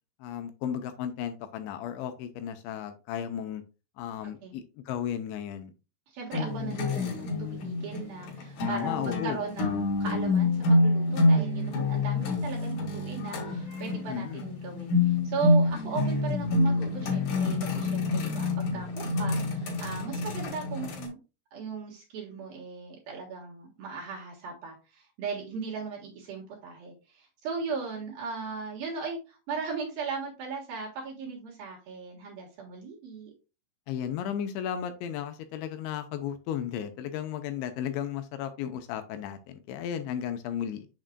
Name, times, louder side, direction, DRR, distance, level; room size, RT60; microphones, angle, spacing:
voice 1, 0.2-3.6 4.0-5.7 8.7-9.4 14.1-14.4 33.9-40.9, left 9 dB, 80° left, 8 dB, 2.9 m, -34 dB
voice 2, 6.1-21.2 21.5-33.3, right 5 dB, 60° right, -2 dB, 2.7 m, -38 dB
sound 1, 6.3-21.1, left 2 dB, 55° left, 3.1 m, -27 dB
7.3 x 6.3 x 2.2 m, 0.30 s
omnidirectional pair, 5.5 m